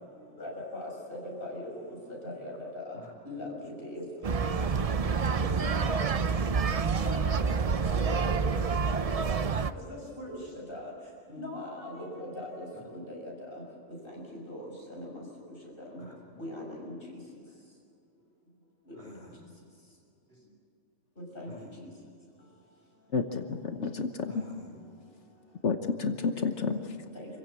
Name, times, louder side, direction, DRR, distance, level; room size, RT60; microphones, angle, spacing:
voice 1, 0.4-1.7 2.2-3.0 3.3-4.0 5.6-6.0 6.8-7.4 8.0-8.6 9.9-10.4 10.7-10.8 11.3-13.6 14.1-14.2 14.5-14.6 14.9-15.1 15.9-16.0 16.4-16.9 21.3-21.5 27.1-27.3, left 1 dB, 45° left, -2 dB, 6.5 m, -40 dB
sound 1, 4.2-9.7, right 5 dB, 40° right, 0.6 m, -28 dB
voice 2, 17.1-17.4 18.9-19.4 20.3-20.5 21.5-21.8 24.3-24.8, equal, 60° right, -3 dB, 7.9 m, -51 dB
voice 3, 23.1-24.4 25.6-27.0, left 4 dB, 65° left, 6 dB, 1.4 m, -30 dB
27.5 x 16.0 x 8.8 m, 2.5 s
omnidirectional pair, 1.3 m